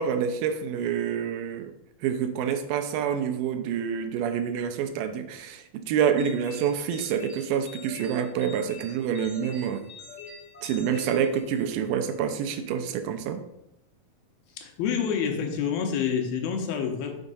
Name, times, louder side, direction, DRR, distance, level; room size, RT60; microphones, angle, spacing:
voice 1, 0.0-1.7 2.0-9.8 10.6-13.4, right 8 dB, 80° right, 7 dB, 2.2 m, -27 dB
sound 1, 6.2-11.9, left 4 dB, 55° left, 0.8 m, -46 dB
voice 2, 14.5-17.1, left 7 dB, 85° left, 4 dB, 2.7 m, -28 dB
6.5 x 3.5 x 5.3 m, 0.85 s
omnidirectional pair, 4.2 m